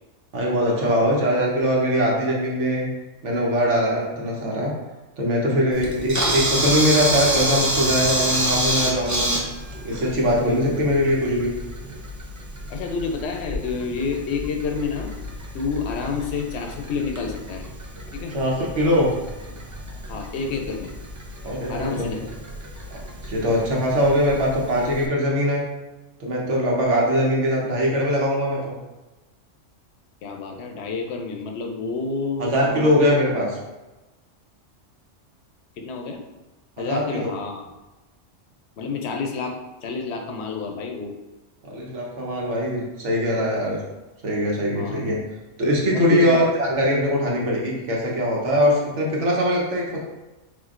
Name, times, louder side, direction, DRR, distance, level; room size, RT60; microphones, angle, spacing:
voice 1, 0.3-2.9 3.2-4.7 5.2-9.3 9.8-11.6 16.0-16.1 18.3-19.1 21.4-22.1 23.2-25.6 26.2-28.8 32.4-33.5 36.8-37.3 41.6-43.8 44.2-45.2 45.6-50.0, equal, 70° right, -3 dB, 1.3 m, -22 dB
Camera, 5.7-25.1, equal, 25° right, 0.4 m, -29 dB
voice 2, 10.4-11.0 12.7-15.1 15.5-17.7 18.1-18.4 20.1-20.9 21.7-22.2 30.2-33.0 35.8-36.2 36.8-37.7 38.8-41.1 44.7-45.0 45.9-46.4, left 4 dB, 65° left, 3 dB, 0.9 m, -29 dB
5.0 x 3.5 x 2.5 m, 1.1 s
omnidirectional pair, 1.3 m